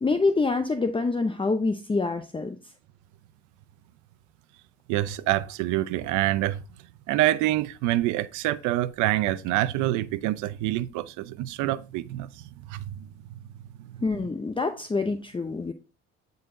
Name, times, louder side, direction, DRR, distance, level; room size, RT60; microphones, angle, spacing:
voice 1, 0.0-2.6 14.0-15.7, left 3 dB, 15° left, 0.7 m, -26 dB
voice 2, 4.9-6.6 7.1-13.1 13.8-14.0, right 15 dB, 85° right, 0.7 m, -26 dB
9.4 x 4.1 x 3.8 m
supercardioid pair, 80°, 29 cm